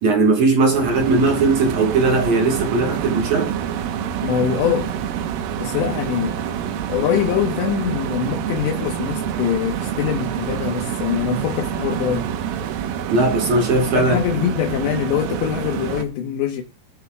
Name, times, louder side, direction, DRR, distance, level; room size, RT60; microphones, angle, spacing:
voice 1, 0.0-3.6 13.1-14.2, right 3 dB, 55° right, 2.2 m, -18 dB
sound 1, 0.6-16.1, right 9 dB, 75° right, 2.2 m, -27 dB
voice 2, 4.2-4.9 5.6-6.4 6.9-12.3 13.9-16.6, left 9 dB, 75° left, 3.2 m, -23 dB
21.5 x 7.3 x 2.3 m
omnidirectional pair, 5.3 m